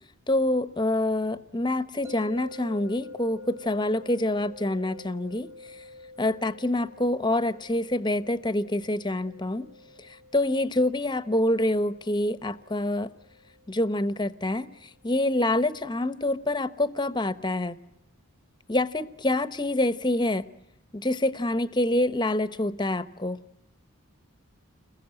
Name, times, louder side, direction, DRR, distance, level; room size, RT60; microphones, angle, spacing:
voice 1, 0.3-5.5 5.8-5.9 6.2-9.7 10.0-13.1 13.7-17.8 18.7-20.5 20.9-23.4, left 1 dB, 20° left, 14 dB, 0.9 m, -26 dB
sound 1, 2.0-15.1, left 2 dB, 10° right, 0.9 m, -48 dB
30.0 x 21.5 x 9.1 m, 0.90 s
head